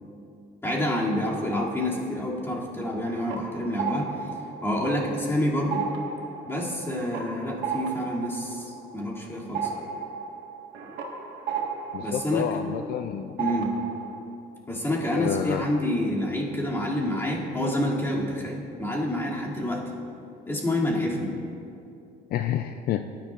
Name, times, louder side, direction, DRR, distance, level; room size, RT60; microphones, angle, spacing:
voice 1, 0.6-4.1 4.6-5.8 6.5-9.7 12.0-12.6 13.4-13.7 14.7-19.8 20.5-21.4, left 1 dB, 15° left, -5 dB, 2.6 m, -28 dB
sound 1, 2.8-5.3 5.6-13.1 13.4-14.2, right 6 dB, 70° right, 1.6 m, -34 dB
voice 2, 11.9-13.4 15.1-15.6 22.3-23.1, left 11 dB, 65° left, 8 dB, 0.4 m, -29 dB
17.5 x 10.0 x 2.5 m, 2.6 s
cardioid pair, 110°, 17 cm